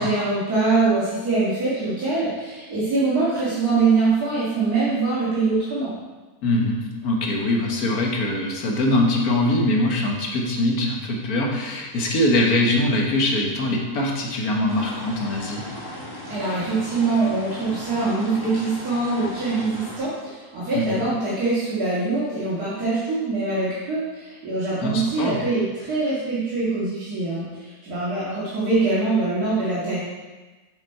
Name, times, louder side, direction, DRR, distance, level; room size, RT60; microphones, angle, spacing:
voice 1, 0.0-5.9 16.3-30.0, right 3 dB, 70° right, -11 dB, 2.4 m, -23 dB
voice 2, 6.4-15.6 20.7-21.0 24.8-25.4, left 1 dB, 70° left, 0 dB, 1.7 m, -22 dB
sound 1, 14.7-20.0, left 1 dB, 15° left, 1.4 m, -37 dB
7.4 x 5.9 x 4.4 m, 1.2 s
omnidirectional pair, 1.7 m